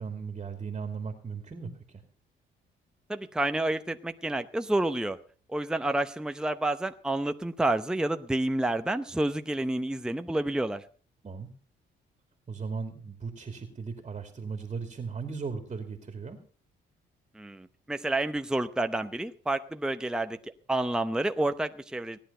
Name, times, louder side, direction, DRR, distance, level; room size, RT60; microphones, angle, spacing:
voice 1, 0.0-2.0 11.2-11.5 12.5-16.4, right 5 dB, 30° right, 6 dB, 2.4 m, -37 dB
voice 2, 3.1-5.2 5.5-10.8 17.4-20.4 20.7-22.2, right 1 dB, 5° right, 8 dB, 0.8 m, -29 dB
18.0 x 10.5 x 5.5 m, 0.42 s
cardioid pair, 90°, 20 cm